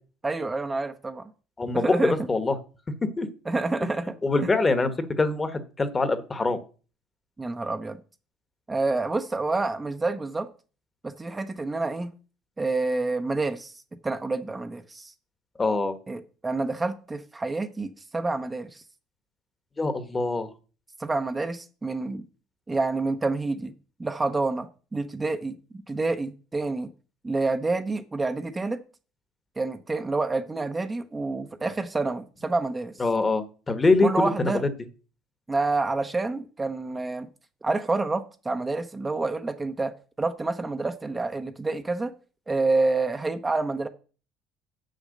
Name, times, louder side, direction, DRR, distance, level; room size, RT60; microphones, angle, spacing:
voice 1, 0.2-1.3 1.7-2.1 3.5-4.1 7.4-8.0 8.7-10.5 11.0-12.1 12.6-13.7 14.0-15.1 16.1-18.8 21.0-22.3 22.7-23.7 24.0-25.6 25.9-26.9 27.2-28.8 29.6-32.9 34.0-34.6 35.5-37.3 37.6-42.1 42.5-43.9, right 3 dB, 20° right, 7 dB, 0.8 m, -28 dB
voice 2, 1.6-2.6 3.2-3.3 4.2-4.9 5.2-6.6 15.6-16.0 19.8-20.5 33.0-34.7, left 3 dB, 20° left, 11 dB, 1.3 m, -24 dB
7.1 x 6.6 x 6.5 m, 0.37 s
supercardioid pair, 95°, 0 cm